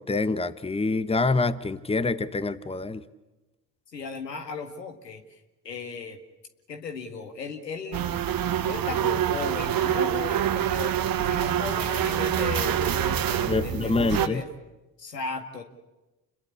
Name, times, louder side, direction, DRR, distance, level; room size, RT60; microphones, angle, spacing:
voice 1, 0.0-3.0 13.4-14.4, left 3 dB, 10° left, 14 dB, 1.3 m, -26 dB
voice 2, 3.9-5.4 5.6-6.2 6.7-8.1 8.7-11.0 11.2-14.5 15.0-15.6, left 5 dB, 90° left, 6 dB, 2.0 m, -36 dB
sound 1, 7.9-14.3, right 10 dB, 45° right, 1.5 m, -26 dB
29.5 x 21.5 x 8.4 m, 1.1 s
figure-of-eight pair, 50°, 48 cm